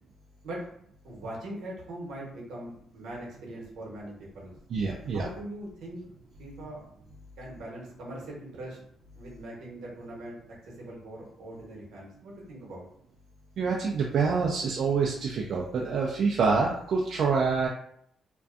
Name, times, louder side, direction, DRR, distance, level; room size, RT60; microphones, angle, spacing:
voice 1, 1.0-4.5 5.1-6.0 6.4-6.8 7.4-8.8 9.1-10.4 10.6-12.9, right 1 dB, 80° right, -3 dB, 0.9 m, -41 dB
voice 2, 4.7-5.3 13.6-17.7, right 5 dB, 65° right, -1 dB, 0.4 m, -26 dB
2.5 x 2.2 x 2.4 m, 0.69 s
cardioid pair, 90°, 0 cm